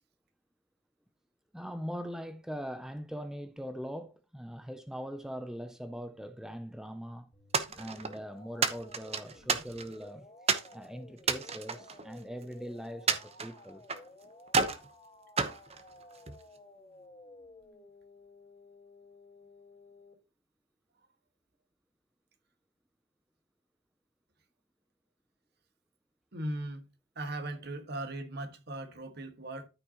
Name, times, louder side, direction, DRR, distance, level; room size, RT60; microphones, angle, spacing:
voice 1, 1.5-7.3 7.8-10.3 10.7-13.8, equal, 5° right, 0.5 m, -41 dB
sound 1, 7.3-20.1, left 2 dB, 30° left, 3.9 m, -55 dB
sound 2, 7.5-8.2 8.6-10.0 10.5-10.7 11.2-12.5 13.1-14.1 14.5-14.9 15.4-16.4, right 5 dB, 30° right, 0.9 m, -31 dB
voice 2, 26.3-26.8 27.1-29.7, right 1 dB, 55° right, 1.6 m, -38 dB
13.0 x 5.8 x 2.9 m
head